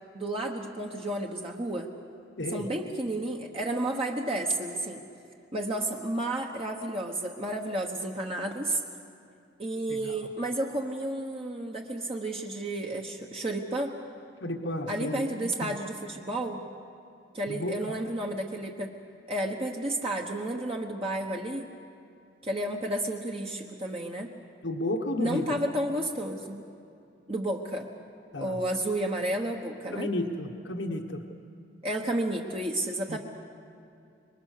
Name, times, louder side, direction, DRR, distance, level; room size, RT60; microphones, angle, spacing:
voice 1, 0.1-1.9 2.5-5.0 5.5-8.8 9.6-13.9 14.9-16.7 17.3-18.9 19.3-21.7 22.4-24.3 25.2-26.6 27.3-27.9 28.3-30.1 31.8-33.2, right 1 dB, 30° right, 0 dB, 1.2 m, -31 dB
voice 2, 2.4-2.7 9.9-10.2 14.4-15.8 17.5-17.9 24.6-25.5 28.3-28.6 29.9-31.2 33.1-33.2, left 1 dB, 70° left, 4 dB, 1.3 m, -33 dB
26.0 x 22.5 x 6.7 m, 2.5 s
head